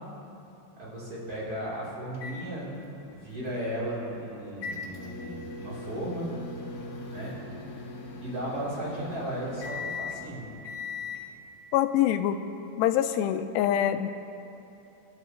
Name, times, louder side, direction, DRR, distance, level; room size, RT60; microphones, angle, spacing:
voice 1, 0.8-2.7 3.1-6.3 7.1-7.3 8.2-10.5, right 1 dB, 35° right, -8 dB, 4.3 m, -35 dB
sound 1, 2.1-11.2, left 3 dB, 55° left, 2.4 m, -40 dB
voice 2, 11.7-12.4 12.8-14.1, left 11 dB, 80° left, 8 dB, 2.5 m, -24 dB
26.0 x 12.0 x 3.2 m, 2.9 s
omnidirectional pair, 5.2 m